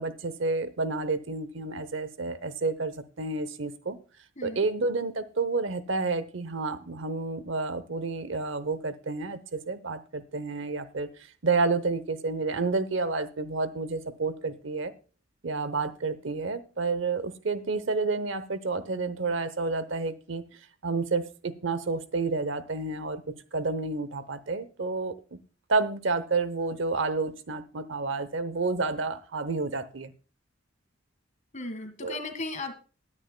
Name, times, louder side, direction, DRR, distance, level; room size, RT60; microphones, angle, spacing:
voice 1, 0.0-4.0 4.4-11.1 11.4-14.9 15.4-20.5 20.8-25.4 25.7-30.1 32.0-32.2, right 3 dB, 70° right, 0.9 m, -30 dB
voice 2, 4.4-4.7 31.5-32.7, left 2 dB, 40° left, 1.8 m, -36 dB
19.5 x 9.8 x 2.2 m
head